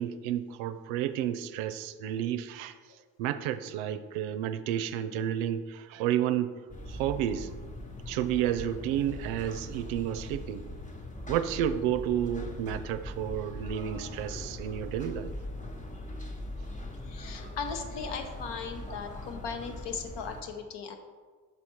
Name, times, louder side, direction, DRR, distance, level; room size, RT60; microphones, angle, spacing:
voice 1, 0.0-2.8 3.2-6.5 6.9-7.5 8.1-10.6 11.3-15.3, right 10 dB, 70° right, 11 dB, 0.5 m, -31 dB
sound 1, 6.7-20.4, left 1 dB, 15° left, 0.9 m, -41 dB
voice 2, 17.0-21.0, left 5 dB, 60° left, 6 dB, 0.9 m, -38 dB
5.7 x 4.2 x 4.6 m, 1.5 s
hypercardioid pair, 55°, 49 cm